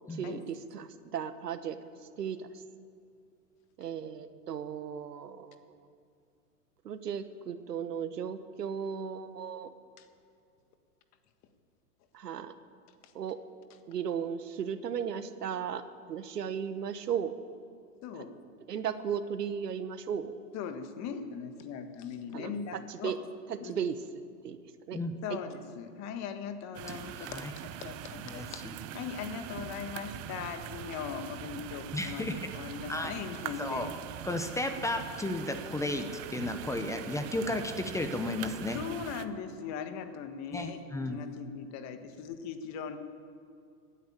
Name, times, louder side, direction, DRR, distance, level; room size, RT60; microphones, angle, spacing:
voice 1, 0.1-1.8 2.2-2.5 3.8-5.8 6.8-9.7 12.1-12.5 13.1-13.4 13.9-15.8 16.1-17.4 18.1-18.2 18.7-20.3 22.3-23.2 23.5-24.0 24.4-24.6 24.9-25.0 25.3-25.4, right 8 dB, 85° right, 11 dB, 1.3 m, -36 dB
voice 2, 18.0-18.3 20.5-23.1 23.6-23.7 25.2-33.9 38.7-43.0, left 7 dB, 35° left, 8 dB, 1.6 m, -40 dB
sound 1, 26.7-39.3, right 11 dB, 30° right, 0.8 m, -42 dB
voice 3, 27.2-27.5 28.3-28.7 31.9-32.5 32.9-33.1 33.6-33.9 34.2-38.8 40.5-41.2, left 2 dB, 5° left, 7 dB, 0.8 m, -34 dB
15.5 x 10.0 x 8.7 m, 2.4 s
hypercardioid pair, 120°, 46 cm